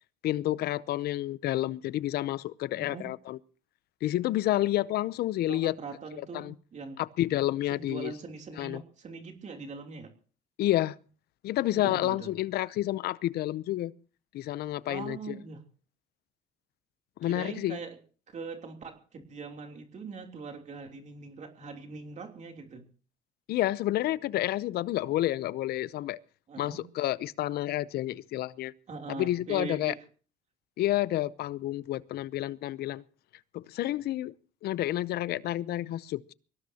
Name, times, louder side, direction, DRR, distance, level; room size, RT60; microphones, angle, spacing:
voice 1, 0.2-3.4 4.0-5.7 6.1-6.5 7.0-8.1 8.6-8.8 10.6-11.0 11.4-13.9 14.3-15.4 17.2-17.8 23.5-26.2 26.6-28.7 29.1-29.9 30.8-33.0 33.5-34.3 34.6-36.3, left 15 dB, 70° left, 0.7 m, -30 dB
voice 2, 2.8-3.1 5.5-7.0 7.7-10.1 11.7-12.3 14.9-15.6 17.2-18.0 18.3-22.8 26.5-26.8 28.9-30.0, right 4 dB, 45° right, 3.2 m, -41 dB
23.5 x 18.0 x 2.9 m
cardioid pair, 110°, 17 cm